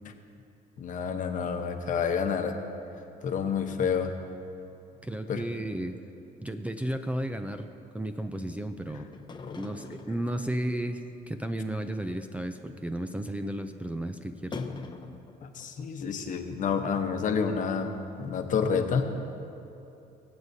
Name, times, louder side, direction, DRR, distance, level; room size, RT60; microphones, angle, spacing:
voice 1, 0.8-2.5 3.2-4.1 5.3-5.4 9.4-9.6 15.4-17.9 18.2-19.0, left 6 dB, 50° left, 6 dB, 1.0 m, -29 dB
voice 2, 5.0-5.9 6.4-7.7 7.9-9.1 9.5-14.6, right 1 dB, 10° right, 7 dB, 0.5 m, -33 dB
sound 1, 9.1-11.1 11.5-11.6 11.9-12.0 12.2-12.5 12.9-13.0 14.5-16.4 16.6-16.7 17.2-17.3 17.6-17.7, left 4 dB, 25° left, 0.8 m, -42 dB
24.0 x 8.0 x 2.8 m, 2.9 s
cardioid pair, 110°, 17 cm